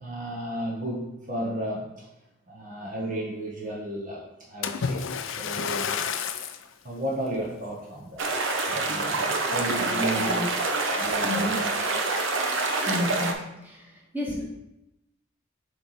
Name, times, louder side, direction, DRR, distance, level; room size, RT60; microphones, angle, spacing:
voice 1, 0.0-2.1 2.5-6.1 6.8-8.3 8.7-11.6, right 1 dB, 40° right, -3 dB, 1.0 m, -34 dB
Splash splatter, 4.6-6.7 7.3-7.5 8.1-8.2, left 6 dB, 90° left, 0.4 m, -30 dB
sound 1, 8.2-13.3, right 3 dB, 85° right, 0.7 m, -26 dB
voice 2, 9.8-10.7 11.2-11.9 12.9-14.4, left 1 dB, 10° right, -4 dB, 1.4 m, -33 dB
7.8 x 3.2 x 4.0 m, 0.89 s
head